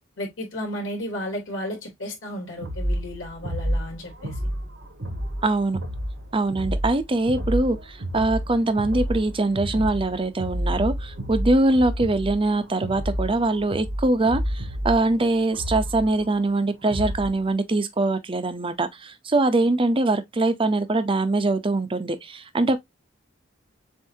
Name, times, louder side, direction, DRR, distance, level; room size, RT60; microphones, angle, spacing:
voice 1, 0.2-4.4, left 1 dB, 80° left, 2.8 m, -33 dB
sound 1, 2.6-17.4, equal, 80° right, 1.3 m, -30 dB
voice 2, 5.4-5.8 6.3-22.8, right 2 dB, 30° right, 0.6 m, -23 dB
7.1 x 2.6 x 2.7 m
head